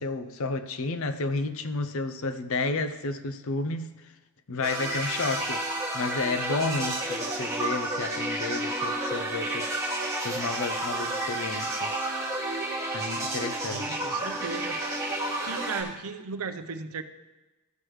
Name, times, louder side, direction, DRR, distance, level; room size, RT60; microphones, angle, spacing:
voice 1, 0.0-4.1 4.5-9.7 10.2-12.0 12.9-14.0, left 3 dB, 65° left, 0.6 m, -32 dB
sound 1, 4.6-15.8, right 1 dB, 15° right, 2.0 m, -31 dB
voice 2, 13.7-14.8 15.4-17.0, right 5 dB, 70° right, 0.6 m, -36 dB
15.0 x 6.3 x 3.2 m
head